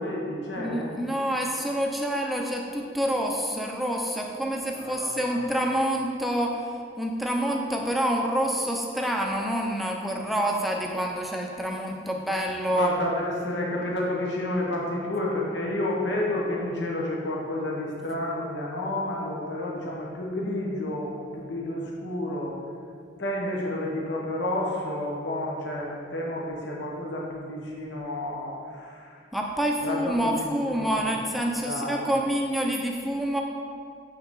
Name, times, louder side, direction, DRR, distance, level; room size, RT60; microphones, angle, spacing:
voice 1, 0.0-0.9 4.7-5.4 12.7-22.6 23.2-29.2 29.8-30.9 31.6-32.1, left 1 dB, 70° left, -3 dB, 1.2 m, -30 dB
voice 2, 0.6-12.9 29.3-33.4, equal, ahead, 0 dB, 0.5 m, -27 dB
7.3 x 5.8 x 3.7 m, 2.2 s
head